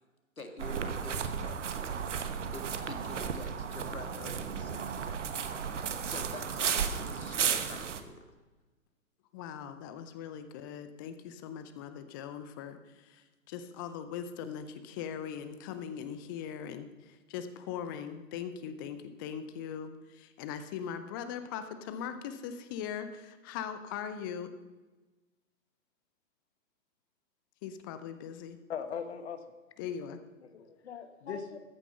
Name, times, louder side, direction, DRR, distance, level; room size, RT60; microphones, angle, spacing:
voice 1, 0.4-1.9 2.3-5.2 5.6-8.3, left 1 dB, 85° left, 6 dB, 2.0 m, -46 dB
sound 1, 0.6-8.0, right 7 dB, 60° right, 1.2 m, -34 dB
voice 2, 9.3-24.5 27.6-28.6 29.8-30.2, left 8 dB, 15° left, 10 dB, 0.5 m, -40 dB
voice 3, 28.7-29.4 30.4-31.7, left 7 dB, 50° left, 9 dB, 1.4 m, -40 dB
14.5 x 9.6 x 5.6 m, 1.2 s
figure-of-eight pair, 120°, 41 cm